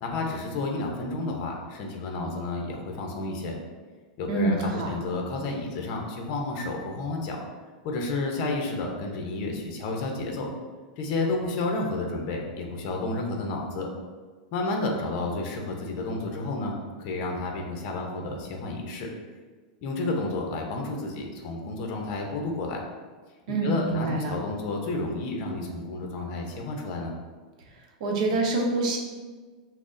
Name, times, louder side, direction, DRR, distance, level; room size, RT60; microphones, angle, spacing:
voice 1, 0.0-3.5 4.2-7.4 7.8-10.5 11.0-13.9 14.5-19.1 19.8-22.8 23.6-27.1, left 2 dB, 45° left, 1 dB, 0.7 m, -31 dB
voice 2, 4.3-4.9 23.5-24.3 28.0-29.0, right 2 dB, 60° right, 0 dB, 0.7 m, -26 dB
5.8 x 2.1 x 2.6 m, 1.4 s
supercardioid pair, 155°, 4 cm